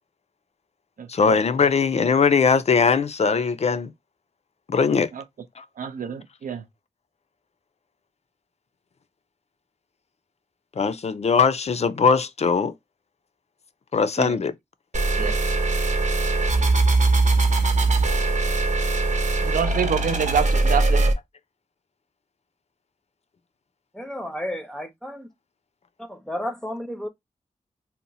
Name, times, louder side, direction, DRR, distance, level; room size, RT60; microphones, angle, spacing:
voice 1, 1.1-3.9 4.7-5.1 5.6-5.7 10.8-12.7 13.9-14.5, left 5 dB, 50° left, 0.4 m, -20 dB
voice 2, 5.8-6.6 14.2-14.3 15.2-15.3 19.4-21.1, right 7 dB, 80° right, 0.5 m, -26 dB
sound 1, 14.9-21.1, right 2 dB, 60° right, 0.8 m, -21 dB
voice 3, 23.9-25.3 26.0-27.1, left 1 dB, 5° left, 0.6 m, -32 dB
2.8 x 2.1 x 3.9 m
cardioid pair, 60°, 14 cm